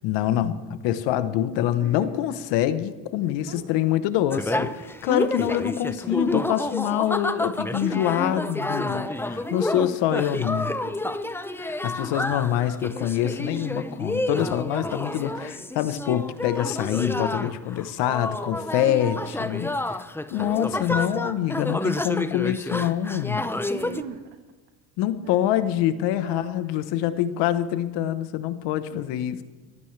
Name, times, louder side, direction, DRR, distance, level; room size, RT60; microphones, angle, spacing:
voice 1, 0.0-4.7 5.0-9.1 9.5-10.7 11.6-20.0 20.3-23.5 25.0-29.4, left 11 dB, 85° left, 12 dB, 1.0 m, -25 dB
voice 2, 1.8-2.4 3.2-4.1 4.5-5.3 7.5-9.6 10.8-11.3 15.1-15.6 18.7-19.3 21.3-22.2 23.7-24.2 25.2-25.6 26.1-27.1 28.9-29.1, right 7 dB, 80° right, 4 dB, 1.4 m, -44 dB
sound 1, 4.3-24.0, left 1 dB, 5° left, 0.6 m, -29 dB
23.5 x 15.0 x 3.3 m, 1.3 s
supercardioid pair, 85°, 41 cm